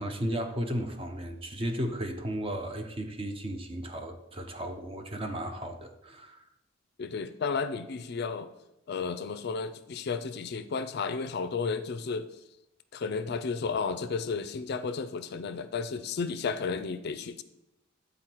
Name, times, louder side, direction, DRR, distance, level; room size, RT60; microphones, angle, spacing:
voice 1, 0.0-6.4, equal, 25° right, 6 dB, 0.6 m, -34 dB
voice 2, 7.0-8.5 8.9-12.3 12.9-17.4, left 5 dB, 50° left, 12 dB, 0.4 m, -33 dB
9.2 x 4.0 x 4.5 m, 0.89 s
head